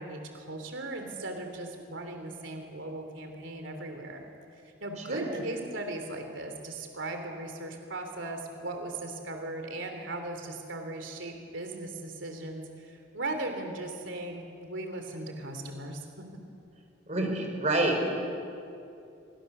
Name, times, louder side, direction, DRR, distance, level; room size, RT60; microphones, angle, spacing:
voice 1, 0.0-4.2 4.5-16.3, right 2 dB, 80° right, 5 dB, 3.0 m, -38 dB
voice 2, 5.1-5.4 17.1-18.1, right 2 dB, 40° right, 3 dB, 4.5 m, -28 dB
26.0 x 23.5 x 6.7 m, 2.6 s
head